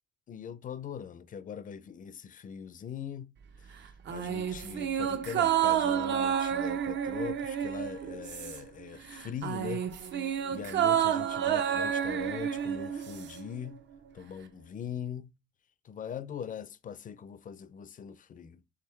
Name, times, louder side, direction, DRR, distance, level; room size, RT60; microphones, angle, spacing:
voice 1, 0.3-3.3 4.1-9.8 10.5-13.8 14.1-15.3 15.9-18.6, left 8 dB, 40° left, 0.5 m, -41 dB
sound 1, 4.1-8.8 9.1-13.4 13.7-13.8, right 9 dB, 65° right, 0.7 m, -30 dB
3.6 x 3.3 x 4.4 m
cardioid pair, 90°, 20 cm